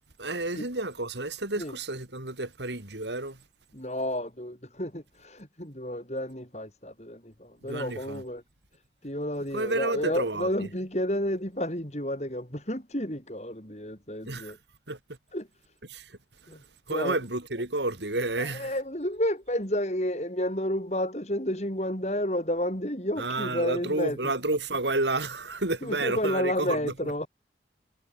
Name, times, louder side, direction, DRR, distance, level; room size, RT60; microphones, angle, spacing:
voice 1, 0.2-3.4 7.7-8.2 9.5-10.7 14.2-14.6 14.9-15.0 15.9-16.2 16.4-16.6 16.9-18.7 23.2-27.1, right 2 dB, 85° right, 4.1 m, -30 dB
voice 2, 3.7-8.4 9.0-14.6 15.3-15.5 16.5-16.6 16.9-17.2 18.4-24.3 25.8-27.3, left 1 dB, 40° left, 5.8 m, -31 dB
head